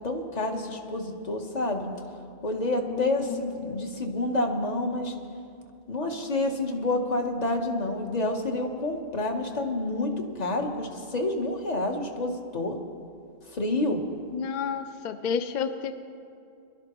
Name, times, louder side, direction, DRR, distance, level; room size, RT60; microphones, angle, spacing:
voice 1, 0.0-1.9 2.4-5.1 5.9-12.8 13.5-14.0, left 2 dB, 40° left, 3 dB, 1.1 m, -28 dB
voice 2, 2.9-3.8 14.3-15.9, left 6 dB, 55° left, 9 dB, 0.6 m, -31 dB
21.5 x 12.0 x 3.0 m, 2.5 s
omnidirectional pair, 1.1 m